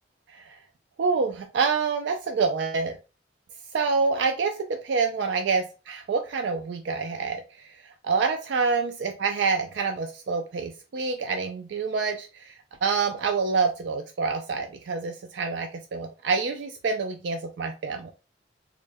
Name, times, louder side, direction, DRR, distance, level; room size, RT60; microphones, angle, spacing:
voice 1, 1.0-3.0 3.7-7.7 8.0-18.1, right 4 dB, 75° right, 5 dB, 0.4 m, -27 dB
3.7 x 2.1 x 3.4 m, 0.33 s
head